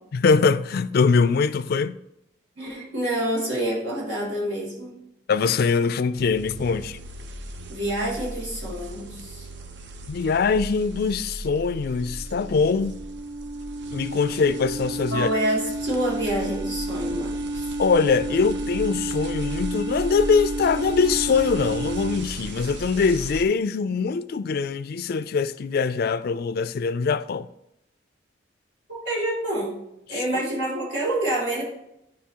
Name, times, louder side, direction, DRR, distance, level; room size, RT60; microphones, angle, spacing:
voice 1, 0.1-2.0 5.3-7.0 10.1-13.0 13.9-15.3 17.8-27.5 30.1-30.4, left 5 dB, 55° left, 0.4 m, -23 dB
voice 2, 2.6-5.0 7.7-9.5 15.1-17.7 28.9-29.8 30.1-31.6, right 1 dB, 90° right, 2.8 m, -27 dB
sound 1, 6.2-23.4, right 1 dB, 70° right, 0.6 m, -38 dB
sound 2, 12.0-22.2, right 2 dB, 20° right, 0.5 m, -31 dB
10.5 x 4.9 x 2.9 m
head